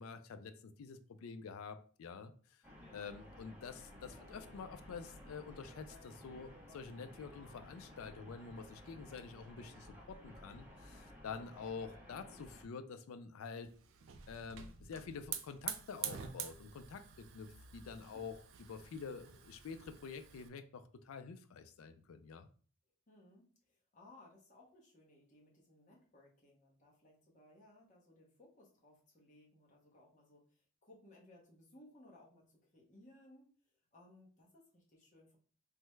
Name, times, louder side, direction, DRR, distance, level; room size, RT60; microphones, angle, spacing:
voice 1, 0.0-2.6 2.9-13.7 14.3-18.4 18.7-22.5, left 5 dB, 70° left, 0.4 m, -48 dB
sound 1, 2.6-12.7, left 1 dB, 10° right, 0.5 m, -55 dB
Hiss / Fire, 13.6-20.5, right 9 dB, 60° right, 0.3 m, -47 dB
voice 2, 23.1-35.4, left 1 dB, 35° left, 0.8 m, -63 dB
3.3 x 2.1 x 3.1 m
head